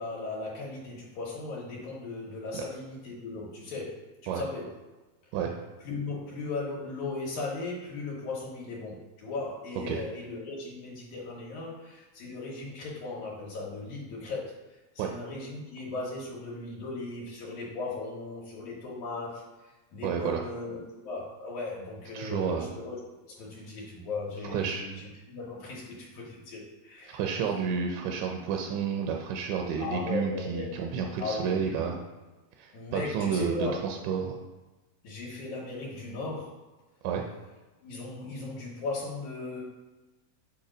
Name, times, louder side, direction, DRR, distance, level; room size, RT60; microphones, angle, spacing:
voice 1, 0.0-4.7 5.8-14.5 14.9-23.0 23.3-27.2 29.8-31.9 32.7-33.8 35.0-36.6 37.8-39.6, left 3 dB, 85° left, -4 dB, 2.3 m, -37 dB
voice 2, 20.0-20.4 22.1-22.7 24.4-24.9 27.1-32.0 32.6-34.3 37.0-37.2, right 6 dB, 90° right, 2 dB, 2.0 m, -30 dB
6.9 x 2.7 x 5.0 m, 1.2 s
omnidirectional pair, 3.3 m